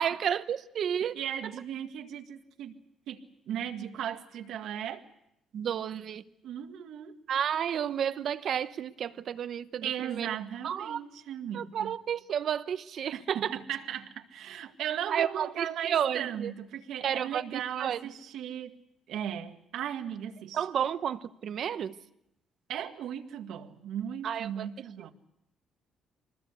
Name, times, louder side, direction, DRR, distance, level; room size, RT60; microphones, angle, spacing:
voice 1, 0.0-1.2 5.5-6.2 7.3-10.3 10.6-11.0 11.5-13.5 15.1-16.5 17.0-18.0 20.5-21.9 24.2-24.7, right 9 dB, 50° right, 0.9 m, -31 dB
voice 2, 1.2-2.7 3.1-5.0 6.4-7.2 9.8-12.0 13.1-18.8 19.1-20.7 22.7-25.1, right 9 dB, 75° right, 1.9 m, -37 dB
25.0 x 20.0 x 8.2 m
cardioid pair, 165°, 0 cm